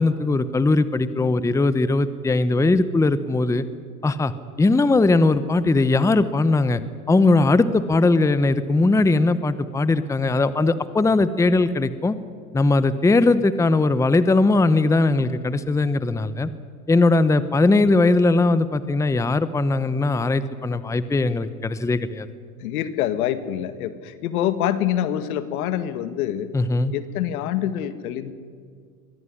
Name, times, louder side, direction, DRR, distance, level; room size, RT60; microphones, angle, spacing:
voice 1, 0.0-3.6 4.0-4.3 4.6-6.8 7.1-12.2 12.5-16.5 16.9-22.3 26.5-26.9, left 2 dB, 5° left, 14 dB, 0.9 m, -19 dB
voice 2, 22.6-26.5 26.9-28.3, left 11 dB, 70° left, 12 dB, 2.0 m, -26 dB
23.0 x 17.5 x 9.9 m, 2.1 s
hypercardioid pair, 110°, 44 cm